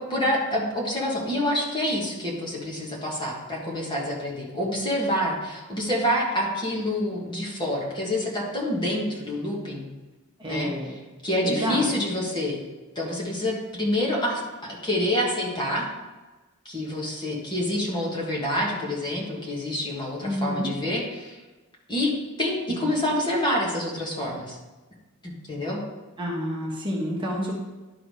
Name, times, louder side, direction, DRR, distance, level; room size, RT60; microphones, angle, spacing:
voice 1, 0.0-9.8 10.5-10.7 11.2-12.6 12.9-15.8 16.6-21.4 21.9-22.1 22.4-24.6 25.2-25.8, left 1 dB, 20° left, -3 dB, 1.6 m, -27 dB
voice 2, 10.4-10.9 11.4-12.1 20.2-20.7 22.7-22.9 26.2-27.5, equal, 25° right, -3 dB, 1.3 m, -29 dB
11.0 x 3.7 x 4.8 m, 1.2 s
head